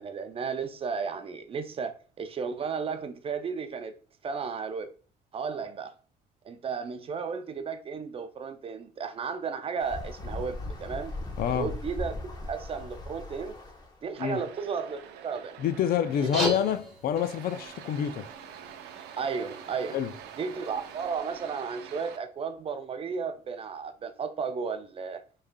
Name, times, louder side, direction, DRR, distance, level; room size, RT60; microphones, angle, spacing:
voice 1, 0.0-3.9 4.2-4.9 5.3-5.9 6.4-11.1 11.5-13.6 14.0-15.5 16.2-16.5 19.2-20.0 20.4-25.2, right 5 dB, 35° right, 0.5 m, -34 dB
sound 1, 9.8-14.1 16.1-16.2 16.4-16.5 17.4-17.5 19.9-20.0 20.6-20.7 21.2-21.3, left 2 dB, 25° left, 0.9 m, -38 dB
voice 2, 11.4-11.7 14.2-14.4 15.6-18.3 19.9-20.1, left 9 dB, 60° left, 0.5 m, -27 dB
sound 2, 14.1-16.8 17.2-22.2, right 9 dB, 85° right, 0.5 m, -46 dB
sound 3, 16.1-21.1, right 1 dB, ahead, 1.7 m, -38 dB
4.7 x 3.2 x 2.2 m
cardioid pair, 110°, 17 cm